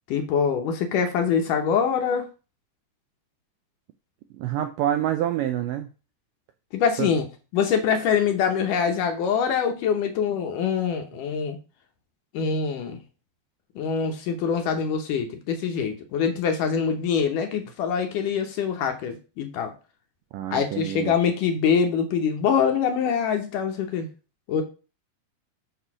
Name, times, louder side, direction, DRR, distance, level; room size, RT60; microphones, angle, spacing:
voice 1, 0.1-2.3 6.7-7.3 7.5-11.6 12.3-13.0 13.8-19.7 20.5-24.1 24.5-24.6, left 6 dB, 70° left, 5 dB, 2.2 m, -24 dB
voice 2, 4.4-5.9 7.0-7.1 20.3-21.1, right 11 dB, 80° right, 8 dB, 1.9 m, -27 dB
7.9 x 4.4 x 6.1 m, 0.33 s
omnidirectional pair, 4.5 m